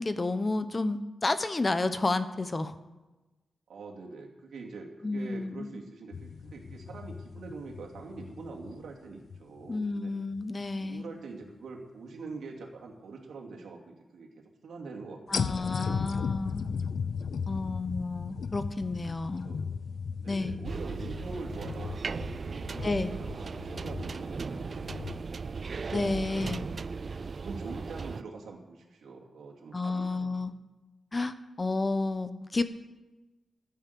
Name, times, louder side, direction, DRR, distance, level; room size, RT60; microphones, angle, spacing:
voice 1, 0.0-2.7 5.0-5.7 9.7-11.0 15.3-16.7 17.5-19.5 20.3-20.6 22.8-23.1 25.9-26.6 29.7-30.5 31.1-32.6, left 3 dB, 20° left, 12 dB, 0.7 m, -31 dB
voice 2, 3.7-10.1 10.8-16.1 19.4-19.6 20.1-25.3 26.7-27.0 27.3-30.4, right 3 dB, 85° right, 1 dB, 2.7 m, -44 dB
sound 1, 6.1-9.8 10.3-10.4 15.3-25.2, left 6 dB, 60° left, 0.5 m, -37 dB
sound 2, 20.6-28.2, right 5 dB, 40° right, 0.3 m, -37 dB
15.0 x 9.4 x 6.8 m, 1.1 s
wide cardioid pair, 160°, 0 cm